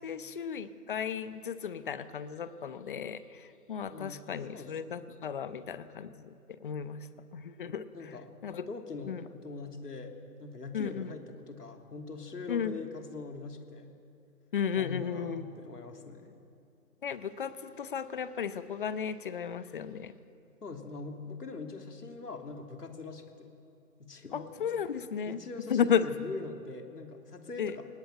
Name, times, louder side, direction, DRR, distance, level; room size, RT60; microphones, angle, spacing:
voice 1, 0.0-7.1 7.3-7.8 8.4-8.7 9.1-9.2 10.7-11.1 12.5-12.8 14.5-15.5 17.0-20.1 24.3-25.4 25.7-26.1 27.6-27.8, left 7 dB, 35° left, 13 dB, 0.9 m, -34 dB
voice 2, 3.9-4.9 5.5-5.6 7.9-8.3 8.7-13.9 14.8-16.3 20.6-23.5 24.0-24.5 25.3-27.9, left 4 dB, 80° left, 3 dB, 3.2 m, -43 dB
22.0 x 19.0 x 9.0 m, 2.5 s
figure-of-eight pair, 145°, 47 cm